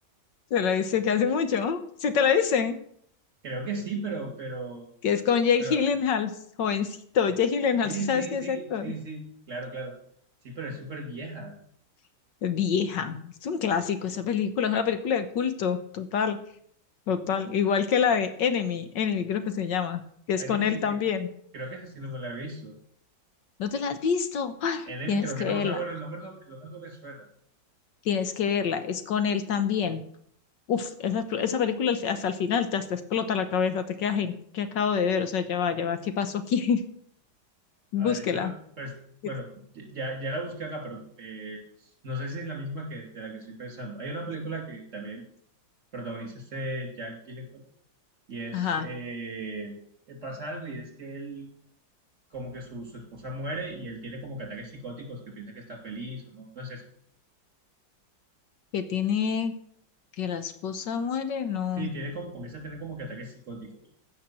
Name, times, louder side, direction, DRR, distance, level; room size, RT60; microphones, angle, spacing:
voice 1, 0.5-2.8 5.0-6.3 6.6-8.9 12.4-16.4 17.1-20.0 20.3-21.3 23.6-25.8 28.0-30.0 30.7-36.8 37.9-38.5 48.5-48.9 58.7-59.5 60.2-61.9, left 7 dB, 70° left, 10 dB, 1.5 m, -26 dB
voice 2, 3.4-4.9 5.6-5.8 7.8-9.9 10.4-11.5 20.4-21.0 21.5-22.7 24.9-27.3 38.0-39.0 39.2-39.5 39.7-45.2 45.9-47.6 48.3-49.7 50.1-51.5 52.3-56.8 61.8-63.7, right 2 dB, 40° right, 3 dB, 3.2 m, -36 dB
15.5 x 5.9 x 7.6 m, 0.66 s
omnidirectional pair, 2.1 m